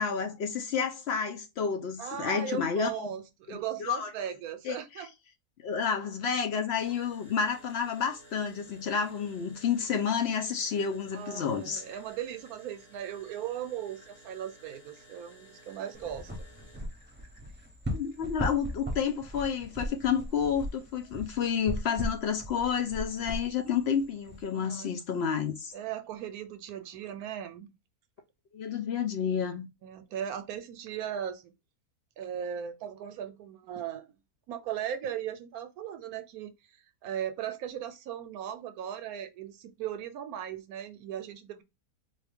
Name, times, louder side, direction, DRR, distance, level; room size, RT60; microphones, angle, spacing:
voice 1, 0.0-3.1 3.5-4.1 4.6-5.0 5.6-11.8 17.9-25.7 28.5-29.7, left 7 dB, 65° left, 0.6 m, -30 dB
voice 2, 2.0-5.1 11.1-16.3 24.5-25.0 25.7-27.7 29.8-31.5 32.2-34.1 34.5-36.5 37.0-41.6, right 9 dB, 75° right, 1.0 m, -37 dB
sound 1, 6.7-25.8, equal, 50° left, 2.6 m, -58 dB
sound 2, 15.9-24.4, equal, 10° right, 0.7 m, -38 dB
4.3 x 2.4 x 3.4 m
omnidirectional pair, 1.6 m